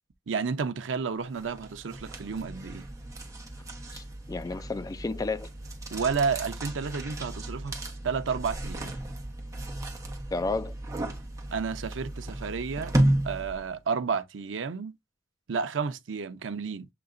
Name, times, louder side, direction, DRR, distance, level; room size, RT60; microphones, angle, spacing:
voice 1, 0.3-2.9 5.9-7.8 8.0-8.9 11.5-12.9 13.2-14.9 15.5-16.9, right 5 dB, 85° right, 0.6 m, -31 dB
sound 1, 1.3-13.7, right 1 dB, 20° right, 1.1 m, -33 dB
voice 2, 3.9-5.5 10.3-10.8, left 3 dB, 20° left, 0.3 m, -32 dB
7.7 x 2.8 x 2.4 m
head